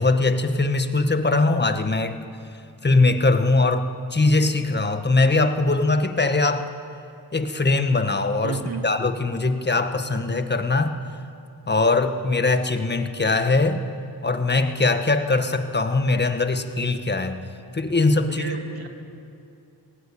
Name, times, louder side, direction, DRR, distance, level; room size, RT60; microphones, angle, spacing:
voice 1, 0.0-2.2 2.8-6.7 7.3-11.0 11.7-13.8 14.2-17.4 17.7-18.4, left 3 dB, 25° left, 8 dB, 1.7 m, -21 dB
voice 2, 8.4-8.9 18.2-18.9, right 4 dB, 65° right, 4 dB, 2.4 m, -32 dB
20.0 x 17.5 x 8.9 m, 2.6 s
cardioid pair, 60°, 40 cm